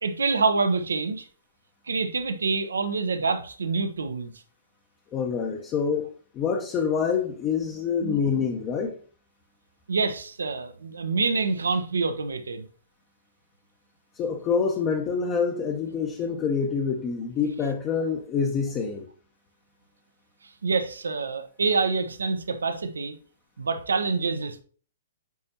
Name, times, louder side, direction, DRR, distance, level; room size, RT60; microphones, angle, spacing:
voice 1, 0.0-1.3 1.9-4.3 8.0-8.2 9.9-12.6 20.6-23.2 23.6-24.6, right 4 dB, 75° right, 0.8 m, -26 dB
voice 2, 5.1-6.1 6.3-9.0 14.2-19.0, left 6 dB, 25° left, 0.8 m, -26 dB
9.4 x 4.4 x 2.8 m
figure-of-eight pair, 120°, 0 cm